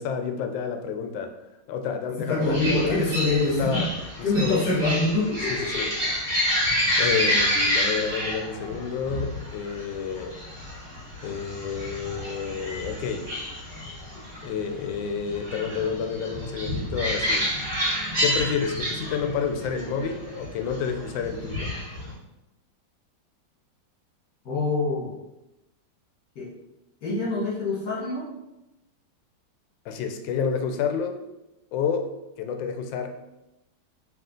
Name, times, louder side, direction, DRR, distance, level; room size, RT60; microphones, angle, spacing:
voice 1, 0.0-1.3 1.7-3.1 3.6-3.9 4.4-4.7 5.5-5.9 7.0-10.4 11.2-13.3 14.4-17.5 18.2-21.7 29.9-31.2 31.7-32.1 32.4-33.1, left 6 dB, 90° left, 6 dB, 1.3 m, -29 dB
voice 2, 2.3-3.8 4.2-5.7 24.5-25.1 26.4-26.5 27.0-28.2, left 2 dB, 65° left, -7 dB, 2.2 m, -25 dB
sound 1, 2.4-22.1, equal, 35° right, 1.3 m, -29 dB
4.7 x 3.0 x 3.7 m, 0.95 s
omnidirectional pair, 2.0 m